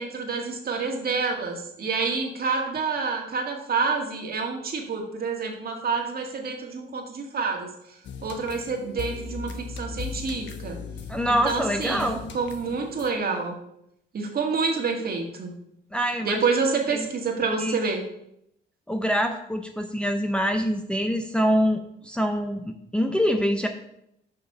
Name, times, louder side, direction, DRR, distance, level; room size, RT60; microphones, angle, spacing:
voice 1, 0.0-7.7 8.2-10.8 11.3-12.0 12.3-13.6 14.1-15.5 16.2-18.0, right 4 dB, 50° right, 2 dB, 1.9 m, -28 dB
sound 1, 8.0-13.1, left 5 dB, 65° left, 0.9 m, -38 dB
voice 2, 11.1-12.2 15.9-16.4 16.9-17.1 17.4-17.8 18.9-23.7, equal, 5° left, 3 dB, 0.8 m, -25 dB
7.0 x 5.6 x 5.5 m, 0.77 s
cardioid pair, 90°, 20 cm